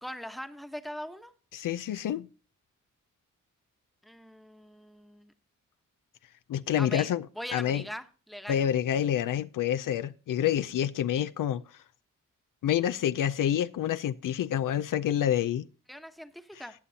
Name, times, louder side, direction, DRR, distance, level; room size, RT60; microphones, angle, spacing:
voice 1, 0.0-1.3 4.0-5.3 6.8-7.1 7.3-8.6 15.9-16.7, equal, ahead, 1.0 m, -41 dB
voice 2, 1.5-2.3 6.5-7.3 7.5-7.8 8.5-11.6 12.6-15.7, left 10 dB, 80° left, 0.5 m, -28 dB
18.5 x 6.8 x 2.8 m
cardioid pair, 70°, 31 cm